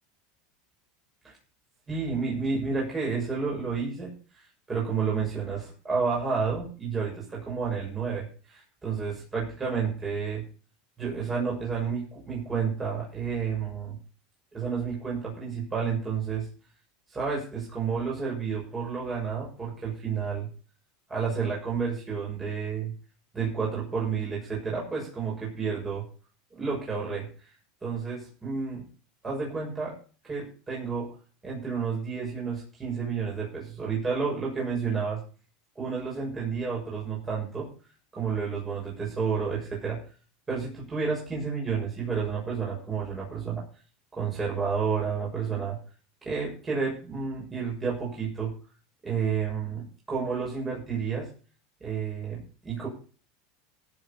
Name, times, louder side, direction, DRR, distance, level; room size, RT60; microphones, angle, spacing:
voice 1, 1.9-4.2 4.7-10.4 11.0-14.0 14.5-16.5 17.1-20.5 21.1-22.9 23.3-26.0 26.5-27.3 27.8-28.9 29.2-30.0 30.2-31.1 31.4-35.2 35.7-37.7 38.1-40.0 40.5-43.6 44.1-45.8 46.2-48.5 49.0-51.3 51.8-52.9, right 5 dB, 15° right, -4 dB, 6.8 m, -30 dB
16.5 x 8.2 x 5.6 m, 0.39 s
supercardioid pair, 135°, 0 cm